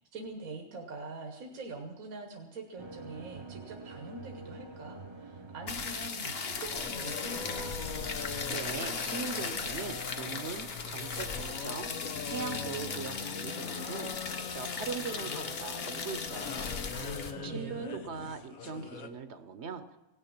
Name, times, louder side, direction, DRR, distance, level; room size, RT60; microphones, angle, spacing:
voice 1, 0.0-7.7 16.9-18.0, right 3 dB, 85° right, 3 dB, 1.6 m, -44 dB
sound 1, 2.8-8.5, right 4 dB, 40° right, 0.4 m, -47 dB
sound 2, 5.7-17.3, left 5 dB, 50° left, 1.1 m, -38 dB
sound 3, 6.7-19.1, left 6 dB, 85° left, 1.5 m, -42 dB
voice 2, 8.5-16.7 17.4-20.0, right 5 dB, 55° right, 10 dB, 1.0 m, -40 dB
17.5 x 6.6 x 8.6 m, 1.1 s
omnidirectional pair, 1.4 m